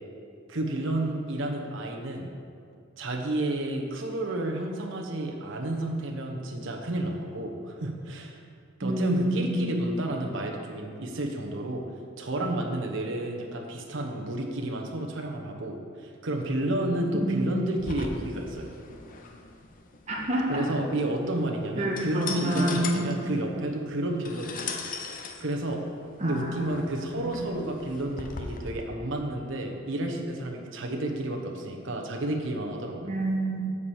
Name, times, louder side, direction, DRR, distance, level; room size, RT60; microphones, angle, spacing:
voice 1, 0.5-2.3 3.0-8.4 8.8-11.8 12.2-18.7 20.5-24.8 25.1-25.8 26.2-33.1, right 1 dB, 65° right, 1 dB, 1.1 m, -31 dB
voice 2, 8.8-9.7 17.1-17.5 20.1-20.6 21.8-23.1 26.2-26.7 27.1-27.4 33.0-33.6, right 1 dB, 35° right, -4 dB, 1.5 m, -28 dB
sound 1, 17.8-28.7, left 4 dB, 45° left, 0.7 m, -40 dB
8.3 x 4.8 x 7.1 m, 2.4 s
head